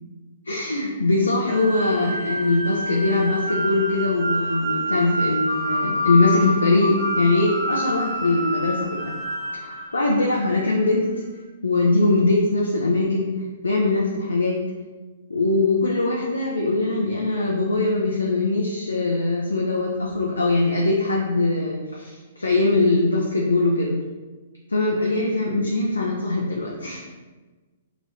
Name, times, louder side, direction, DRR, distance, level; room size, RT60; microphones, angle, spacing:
voice 1, 0.5-9.1 9.5-11.2 11.6-13.3 13.6-14.6 15.3-24.0 24.7-27.0, left 2 dB, 85° left, -2 dB, 0.4 m, -22 dB
sound 1, 1.5-10.6, equal, 40° right, 1.1 m, -28 dB
2.9 x 2.5 x 3.1 m, 1.3 s
figure-of-eight pair, 120°, 0 cm